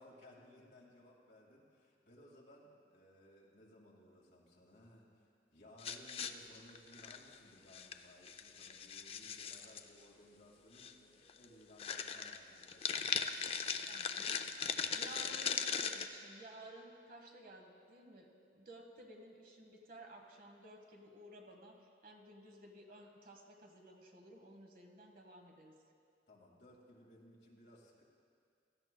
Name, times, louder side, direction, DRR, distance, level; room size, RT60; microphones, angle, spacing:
voice 1, 0.0-14.4 26.3-28.0, left 1 dB, 60° left, -3 dB, 2.0 m, -61 dB
sound 1, 5.8-7.4 7.7-8.0 8.3-9.8 10.8-10.9 11.3-11.4 11.8-16.1, left 6 dB, 35° left, 0.3 m, -39 dB
voice 2, 13.9-14.3 14.7-25.7, right 1 dB, 50° right, 2 dB, 1.1 m, -55 dB
16.5 x 13.0 x 2.2 m, 2.2 s
head